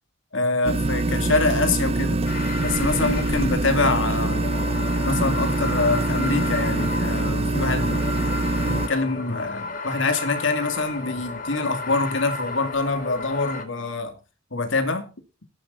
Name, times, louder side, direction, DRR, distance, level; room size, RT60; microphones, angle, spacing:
voice 1, 0.3-2.2 2.6-4.4 5.0-8.0 8.7-14.2 14.5-15.1, left 3 dB, 80° left, 2.7 m, -25 dB
sound 1, 0.6-8.9, right 2 dB, 30° right, 0.5 m, -24 dB
sound 2, 2.2-13.6, left 3 dB, 45° left, 2.1 m, -32 dB
15.0 x 11.5 x 4.1 m
head